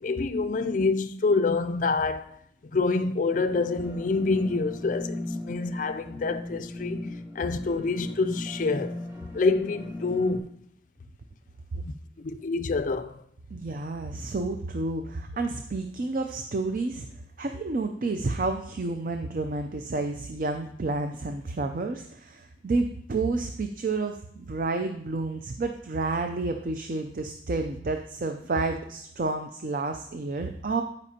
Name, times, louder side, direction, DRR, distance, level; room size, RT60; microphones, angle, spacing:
voice 1, 0.0-2.4 2.7-9.0 9.3-10.5 11.8-13.2, left 3 dB, 45° left, 0.4 m, -27 dB
sound 1, 3.3-10.4, left 1 dB, 15° right, 1.2 m, -38 dB
voice 2, 13.5-17.1 17.4-30.8, right 3 dB, 45° right, 0.5 m, -30 dB
13.0 x 5.3 x 2.8 m
head